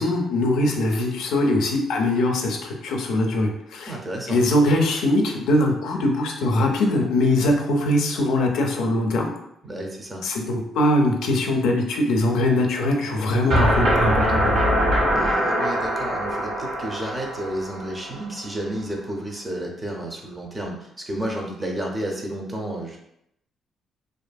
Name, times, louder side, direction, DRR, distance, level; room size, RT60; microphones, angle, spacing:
voice 1, 0.0-3.9 4.3-9.3 10.2-14.7, left 1 dB, 85° left, 2 dB, 0.4 m, -22 dB
voice 2, 3.9-4.4 9.6-10.2 15.1-23.0, right 1 dB, 20° right, 0 dB, 0.6 m, -31 dB
sound 1, 13.5-18.4, right 1 dB, 80° right, 1.2 m, -22 dB
2.6 x 2.5 x 2.3 m, 0.78 s
cardioid pair, 90°, 0 cm